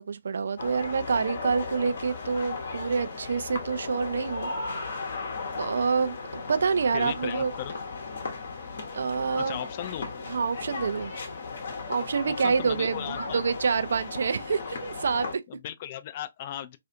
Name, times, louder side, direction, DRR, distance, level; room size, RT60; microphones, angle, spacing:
voice 1, 0.0-5.0 5.6-7.5 8.9-9.6 10.3-11.1 11.9-15.4, right 5 dB, 60° right, 0.3 m, -27 dB
sound 1, 0.6-15.3, left 4 dB, 55° left, 0.8 m, -36 dB
voice 2, 6.9-7.7 9.4-10.1 12.3-13.4 15.5-16.8, left 11 dB, 35° left, 0.3 m, -36 dB
2.4 x 2.4 x 2.6 m
figure-of-eight pair, 135°, 0 cm